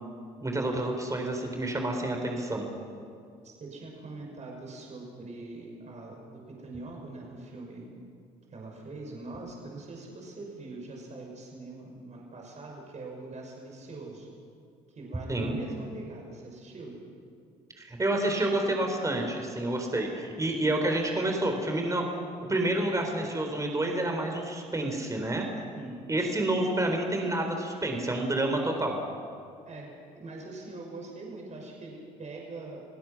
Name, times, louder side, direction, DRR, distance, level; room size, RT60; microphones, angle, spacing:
voice 1, 0.4-2.7 15.3-15.6 17.8-22.0 22.5-25.5 26.1-29.0, right 1 dB, 20° right, 3 dB, 4.0 m, -29 dB
voice 2, 3.4-7.9 8.5-14.3 14.9-16.9 25.7-26.0 29.7-29.9 30.1-32.8, right 2 dB, 40° right, -1 dB, 6.0 m, -43 dB
29.0 x 16.5 x 6.0 m, 2.3 s
hypercardioid pair, 60°, 18 cm